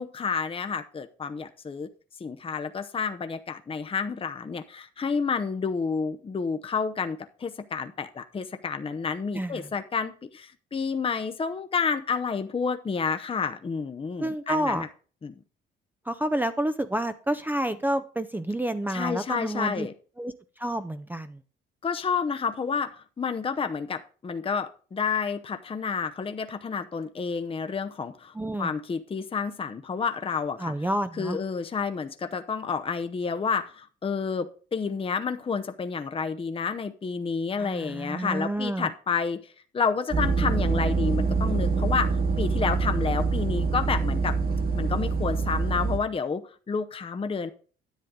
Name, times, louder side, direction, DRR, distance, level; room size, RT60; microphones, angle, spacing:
voice 1, 0.0-1.9 2.2-14.9 15.2-15.3 18.9-19.9 21.8-30.7 31.1-44.4 44.7-47.5, left 5 dB, 30° left, 8 dB, 0.7 m, -30 dB
voice 2, 9.3-9.7 14.2-14.9 16.1-19.9 20.2-20.3 20.6-21.4 28.3-28.7 30.6-31.4 37.6-38.9, right 1 dB, 10° right, 10 dB, 0.5 m, -29 dB
sound 1, 40.1-46.0, right 4 dB, 50° right, 1.7 m, -25 dB
10.5 x 7.7 x 3.7 m, 0.40 s
cardioid pair, 90°, 20 cm